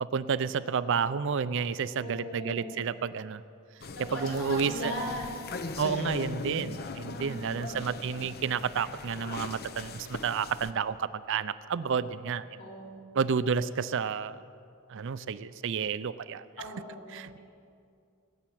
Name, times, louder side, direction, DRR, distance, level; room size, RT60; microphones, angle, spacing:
voice 1, 0.0-3.4 4.1-4.9 5.8-12.5 13.1-14.4 14.9-16.5 17.1-17.4, right 6 dB, 60° right, 15 dB, 0.4 m, -30 dB
voice 2, 2.0-2.8 3.9-5.3 7.1-7.9 12.5-13.1 16.6-17.4, equal, 65° left, -4 dB, 4.6 m, -39 dB
sound 1, 3.8-10.7, left 3 dB, 45° left, 0.7 m, -40 dB
18.5 x 7.2 x 9.2 m, 2.4 s
head